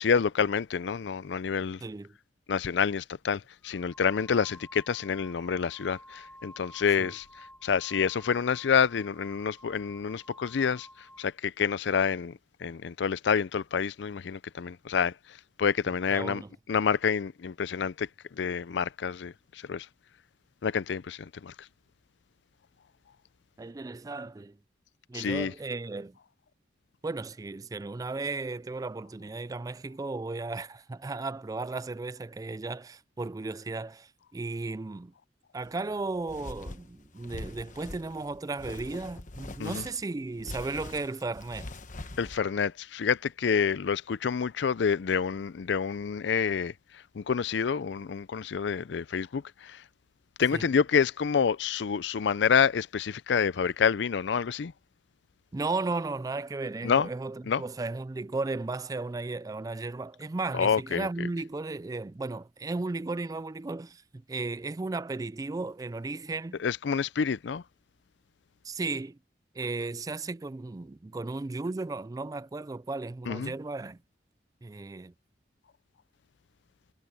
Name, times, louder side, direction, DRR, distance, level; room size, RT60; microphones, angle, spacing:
voice 1, 0.0-1.8 2.5-7.2 7.6-10.9 11.2-12.3 12.6-15.1 15.6-16.4 16.7-18.1 18.4-19.3 19.7-19.9 20.6-21.5 25.1-25.5 39.6-39.8 42.2-46.7 47.2-49.4 50.4-54.7 56.8-57.1 57.5-57.6 60.6-61.1 66.6-67.6 73.3-73.5, left 6 dB, 70° left, 0.4 m, -28 dB
voice 2, 1.8-2.2 7.0-7.1 15.9-16.5 23.6-24.6 25.1-26.2 27.0-35.1 35.5-41.7 50.5-50.7 55.5-66.6 68.6-69.2 69.5-74.0 74.6-75.1, right 3 dB, 20° right, 0.3 m, -35 dB
sound 1, 3.6-11.3, equal, 5° left, 1.5 m, -52 dB
sound 2, 35.6-42.4, left 2 dB, 45° left, 1.1 m, -43 dB
head